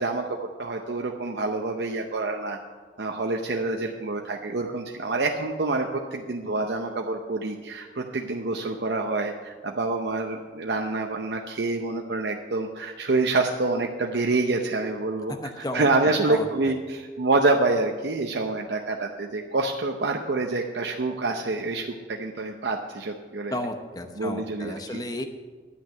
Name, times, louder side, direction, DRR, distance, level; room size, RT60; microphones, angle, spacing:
voice 1, 0.0-2.6 3.0-23.5 24.2-25.0, right 3 dB, 75° right, 2 dB, 0.7 m, -27 dB
voice 2, 15.4-15.9 16.3-16.7 23.5-25.2, left 1 dB, 20° left, 5 dB, 0.8 m, -33 dB
11.0 x 5.9 x 9.1 m, 1.4 s
head